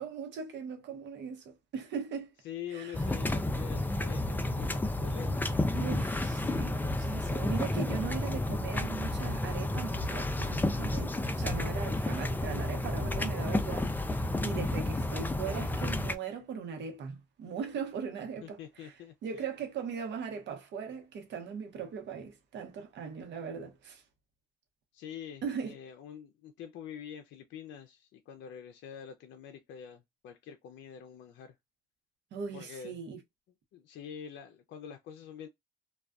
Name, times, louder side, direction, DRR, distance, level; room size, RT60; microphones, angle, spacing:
voice 1, 0.0-2.3 2.7-3.0 5.7-18.9 19.2-24.0 25.4-25.7 32.3-33.2, right 6 dB, 75° right, 0.8 m, -39 dB
voice 2, 2.4-5.6 18.4-19.4 24.9-31.5 32.5-33.0 33.7-35.5, left 8 dB, 75° left, 0.4 m, -45 dB
sound 1, 2.9-16.2, left 1 dB, 10° left, 0.3 m, -31 dB
2.4 x 2.2 x 2.2 m
cardioid pair, 80°, 19 cm